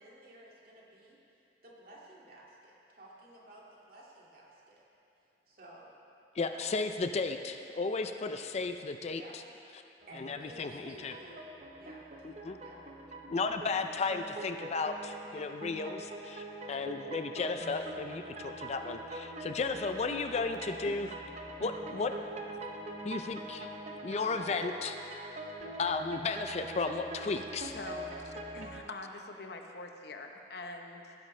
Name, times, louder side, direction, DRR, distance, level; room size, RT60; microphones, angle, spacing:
voice 1, 0.0-4.8 5.2-5.9 6.5-6.7 9.1-9.3 10.1-11.5 11.8-12.0 12.6-12.8, right 1 dB, 55° right, -4 dB, 2.2 m, -54 dB
voice 2, 6.4-9.2 10.2-11.1 12.2-12.6 13.3-21.1 21.6-22.1 23.0-23.7 24.0-25.0 25.8-27.8, left 4 dB, 40° left, 7 dB, 0.4 m, -34 dB
sound 1, 10.0-28.8, right 1 dB, 40° right, 0.9 m, -44 dB
voice 3, 27.7-28.0 28.5-31.1, left 2 dB, 65° left, 4 dB, 0.9 m, -44 dB
18.0 x 10.0 x 3.3 m, 2.7 s
head